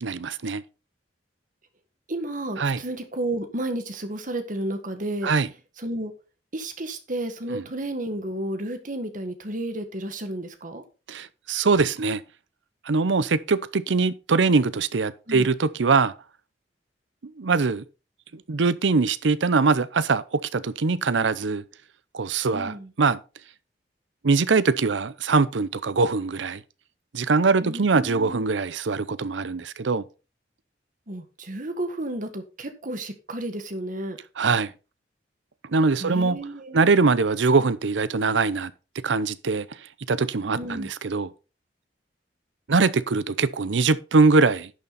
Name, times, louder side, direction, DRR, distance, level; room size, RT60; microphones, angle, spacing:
voice 1, 0.0-0.6 2.6-2.8 5.2-5.5 7.5-7.6 11.1-12.2 12.9-16.1 17.4-17.8 18.3-21.6 22.1-23.2 24.2-26.6 27.1-30.0 34.4-34.7 35.7-36.4 36.7-38.7 39.0-39.7 40.1-41.3 42.7-44.7, right 4 dB, 90° right, 0.7 m, -22 dB
voice 2, 2.1-5.3 5.8-6.1 6.5-10.8 15.3-15.5 22.5-22.9 27.6-28.5 31.1-34.2 36.0-36.8 40.5-40.9, right 1 dB, 45° right, 1.7 m, -32 dB
11.0 x 6.8 x 4.1 m
head